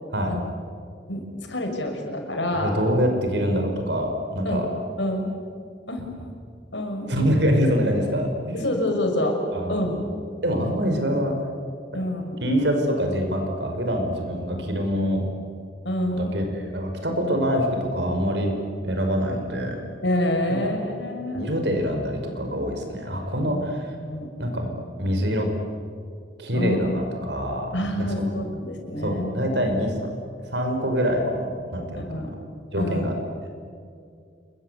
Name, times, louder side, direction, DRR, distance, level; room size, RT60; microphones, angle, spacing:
voice 1, 1.5-2.7 4.4-4.7 5.0-5.3 5.9-6.3 6.7-7.1 8.5-9.4 9.7-10.0 11.9-12.4 15.8-16.4 20.0-21.5 23.4-23.6 23.9-24.3 26.5-26.8 27.7-29.6 32.0-32.3 32.8-33.0, left 1 dB, 75° left, 3 dB, 6.3 m, -27 dB
voice 2, 2.6-4.7 7.1-8.6 9.5-10.0 10.4-11.3 12.4-15.2 16.1-18.5 18.8-19.8 20.6-20.7 21.3-24.0 24.4-24.7 25.0-25.5 26.4-28.2 29.0-30.1 30.4-32.2 32.7-33.2, equal, 65° right, 4 dB, 5.6 m, -25 dB
28.0 x 23.0 x 8.4 m, 2.3 s
head